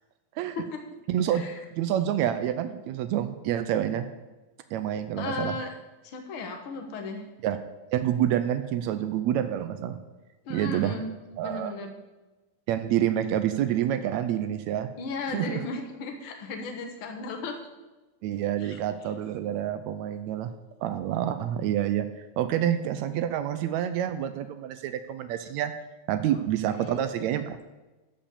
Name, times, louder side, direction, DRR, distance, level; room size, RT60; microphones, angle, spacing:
voice 1, 1.1-1.4 1.7-4.1 4.7-5.5 7.4-7.6 7.9-10.0 10.5-10.9 11.4-11.7 12.7-14.9 15.3-15.6 18.2-20.5 20.8-25.7 26.1-27.7, right 11 dB, 80° right, 10 dB, 1.6 m, -28 dB
voice 2, 5.2-5.7 6.0-7.3 10.5-11.1 11.4-11.9 15.0-17.6 18.6-18.8 26.3-26.4 26.7-27.0, left 3 dB, 50° left, 3 dB, 1.8 m, -35 dB
13.5 x 5.3 x 7.2 m, 1.1 s
omnidirectional pair, 3.8 m